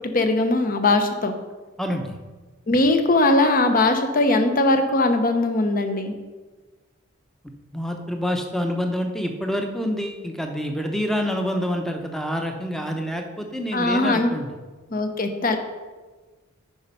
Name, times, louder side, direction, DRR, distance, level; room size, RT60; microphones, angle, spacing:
voice 1, 0.1-1.3 2.7-6.1 13.7-14.3 14.9-15.6, left 2 dB, 45° left, 7 dB, 0.9 m, -20 dB
voice 2, 1.8-2.2 7.7-14.5, equal, ahead, 4 dB, 0.8 m, -27 dB
9.4 x 5.4 x 5.5 m, 1.3 s
head